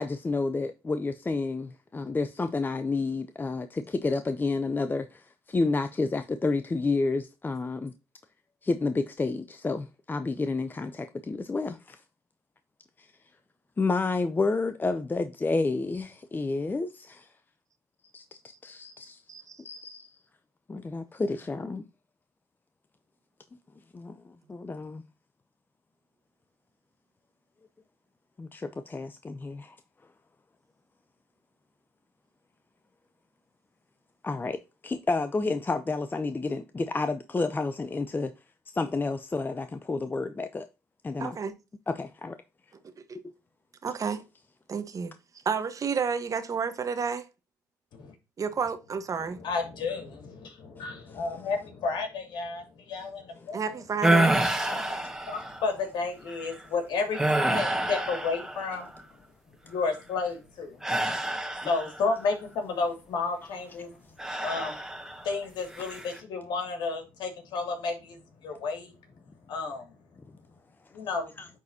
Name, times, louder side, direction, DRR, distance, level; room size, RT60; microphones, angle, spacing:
voice 1, 0.0-7.9 8.6-12.0 13.0-13.1 13.8-17.3 18.1-19.2 19.6-20.2 20.7-21.8 23.9-25.0 28.4-29.8 34.2-34.6 34.8-38.3 38.7-40.7 41.0-41.4 41.9-42.3 51.1-51.2 54.7-54.8 71.4-71.5, left 3 dB, 25° left, 0.7 m, -30 dB
voice 2, 41.2-41.5 43.8-44.2 44.7-45.1 45.4-47.2 48.4-49.4 53.5-54.3, right 6 dB, 45° right, 1.3 m, -30 dB
voice 3, 49.2-53.8 54.6-58.9 59.6-60.8 61.7-64.0 64.4-64.8 65.2-68.9 69.5-69.9 70.9-71.3, left 4 dB, 70° left, 2.6 m, -32 dB
sound 1, 54.0-55.7 56.3-56.5 57.1-59.0 60.8-62.2 64.2-65.3 65.7-66.2, right 1 dB, 5° right, 1.7 m, -28 dB
9.3 x 4.1 x 2.8 m
supercardioid pair, 65°, 8 cm